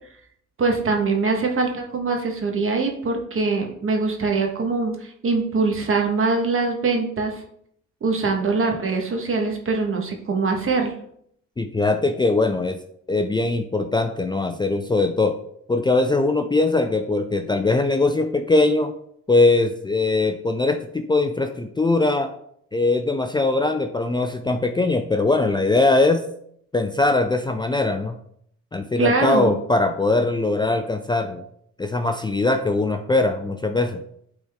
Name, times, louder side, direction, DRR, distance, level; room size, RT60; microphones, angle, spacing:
voice 1, 0.6-7.4 8.0-10.9 29.0-29.5, right 4 dB, 45° right, 2 dB, 1.7 m, -23 dB
voice 2, 11.6-12.8 13.1-15.4 15.7-18.9 19.3-22.3 22.7-26.2 26.7-28.2 28.7-31.4 31.8-34.0, left 2 dB, 15° left, 7 dB, 0.5 m, -21 dB
9.0 x 4.3 x 3.7 m, 0.68 s
cardioid pair, 90°, 30 cm